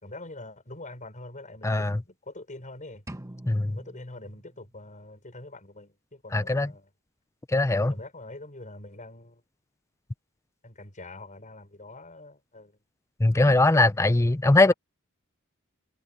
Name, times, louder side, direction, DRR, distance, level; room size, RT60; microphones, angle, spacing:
voice 1, 0.0-3.0 3.7-6.9 7.9-9.4 10.6-12.8 14.6-14.7, left 2 dB, 35° left, 6.2 m, -44 dB
voice 2, 1.6-2.0 3.5-3.8 6.3-6.7 7.5-7.9 13.2-14.7, left 2 dB, 15° left, 0.5 m, -21 dB
sound 1, 3.1-5.0, right 1 dB, 15° right, 1.3 m, -45 dB
head